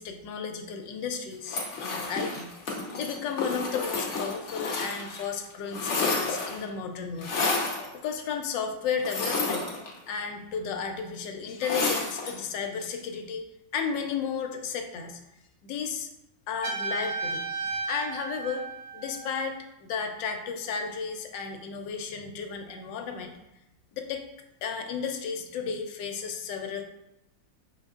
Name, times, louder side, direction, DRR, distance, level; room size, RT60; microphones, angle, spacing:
voice 1, 0.0-2.5 3.0-7.3 7.9-9.7 10.1-13.5 13.7-15.2 15.6-16.1 16.5-18.6 18.9-23.3 23.9-24.2 24.6-26.8, left 6 dB, 80° left, 5 dB, 1.2 m, -33 dB
sound 1, 1.5-5.2 5.5-6.7 7.2-7.9 9.0-10.2 11.6-12.4, left 3 dB, 50° left, 0.9 m, -30 dB
Trumpet, 16.6-19.5, right 3 dB, 70° right, 1.4 m, -34 dB
5.5 x 3.8 x 2.4 m, 0.88 s
omnidirectional pair, 2.0 m